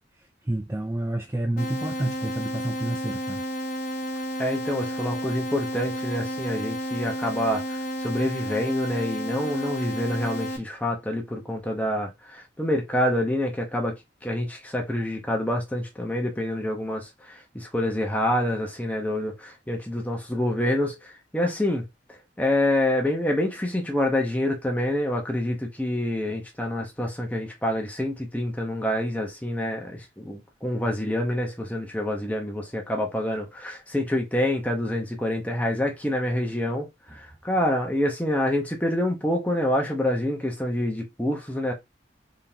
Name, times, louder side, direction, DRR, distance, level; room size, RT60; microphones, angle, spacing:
voice 1, 0.4-3.4, right 1 dB, 15° right, 0.4 m, -29 dB
sound 1, 1.6-10.6, equal, 45° left, 1.0 m, -31 dB
voice 2, 4.4-14.0 14.2-21.8 22.4-41.7, left 1 dB, 10° left, 1.0 m, -27 dB
3.8 x 3.7 x 2.8 m
head